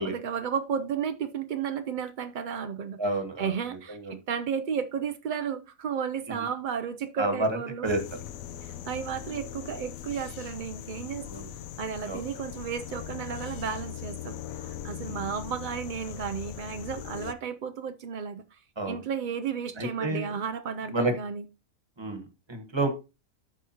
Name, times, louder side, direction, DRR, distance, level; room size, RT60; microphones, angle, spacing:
voice 1, 0.0-3.0 3.4-7.9 8.6-11.4 11.8-18.6 18.9-21.4, right 7 dB, 80° right, 0.4 m, -33 dB
voice 2, 3.0-3.5 3.9-4.2 6.3-6.5 7.2-7.5 7.8-8.0 11.3-11.5 12.1-12.2 15.0-15.3 18.8-19.0 19.8-20.3 20.9-21.1 22.0-22.9, right 2 dB, 20° right, 1.1 m, -29 dB
sound 1, 7.8-17.3, left 11 dB, 80° left, 1.0 m, -40 dB
13.0 x 4.8 x 2.9 m
omnidirectional pair, 1.5 m